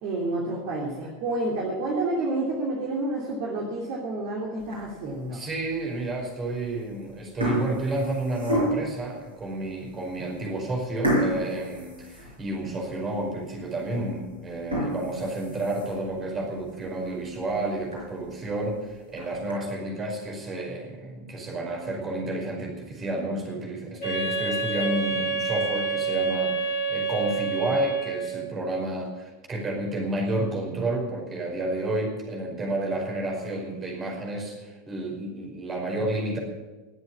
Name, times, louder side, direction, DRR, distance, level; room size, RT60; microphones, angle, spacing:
voice 1, 0.0-5.4, right 2 dB, 50° right, -2 dB, 2.8 m, -29 dB
sound 1, 4.6-5.1 5.7-5.8 6.7-6.9 7.2-9.0 9.7-9.8 10.1-10.2 11.0-12.8 13.2-13.3 13.8-13.9 14.5-16.1 16.6-16.7 17.1-17.2 17.5-17.6 17.9-18.0 18.9-19.5, equal, 80° right, 5.5 m, -29 dB
voice 2, 5.3-36.4, right 1 dB, 25° right, 1 dB, 5.1 m, -30 dB
Wind instrument woodwind instrument, 24.0-28.5, right 4 dB, 70° left, 6.0 m, -28 dB
20.5 x 8.1 x 7.2 m, 1.2 s
figure-of-eight pair, 85°, 0 cm